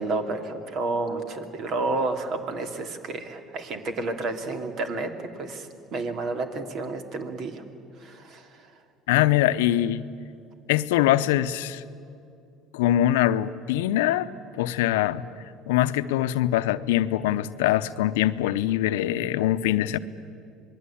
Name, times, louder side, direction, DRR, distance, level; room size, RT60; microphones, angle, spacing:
voice 1, 0.0-5.1 5.4-7.6 8.0-8.4, right 3 dB, 55° right, 6 dB, 2.9 m, -30 dB
voice 2, 9.1-10.1 10.7-11.8 12.7-15.3 15.7-20.0, left 13 dB, 80° left, 14 dB, 0.7 m, -23 dB
26.5 x 21.0 x 8.7 m, 2.5 s
hypercardioid pair, 70°, 0 cm